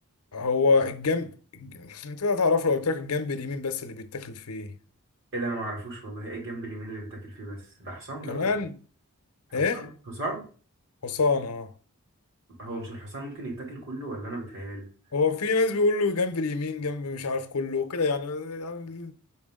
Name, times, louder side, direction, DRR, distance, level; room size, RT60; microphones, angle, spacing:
voice 1, 0.3-4.7 8.2-8.8 9.5-9.9 11.0-11.7 15.1-19.1, left 4 dB, 80° left, 0.7 m, -26 dB
voice 2, 5.3-8.5 9.5-9.9 10.2-10.5 12.6-14.9, right 2 dB, 60° right, 2.7 m, -35 dB
6.0 x 4.6 x 3.6 m
head